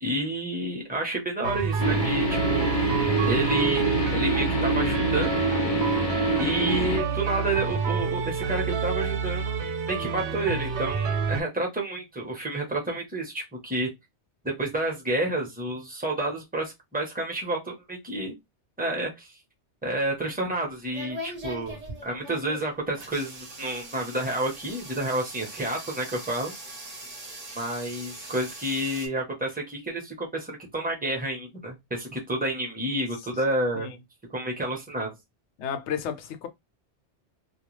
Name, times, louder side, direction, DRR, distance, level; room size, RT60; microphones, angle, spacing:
voice 1, 0.0-2.8 3.3-3.9 4.1-5.4 6.4-13.9 14.4-18.3 18.8-19.3 19.8-21.7 22.0-26.5 27.5-33.9 34.3-35.2, right 1 dB, 10° right, 0.7 m, -30 dB
sound 1, 1.4-11.4, right 6 dB, 85° right, 0.9 m, -28 dB
sound 2, 1.8-7.0, right 1 dB, 45° left, 0.5 m, -26 dB
sound 3, 20.1-29.1, right 1 dB, 40° right, 0.8 m, -41 dB
voice 2, 35.6-36.5, left 8 dB, 85° left, 0.9 m, -32 dB
2.3 x 2.2 x 3.1 m
omnidirectional pair, 1.1 m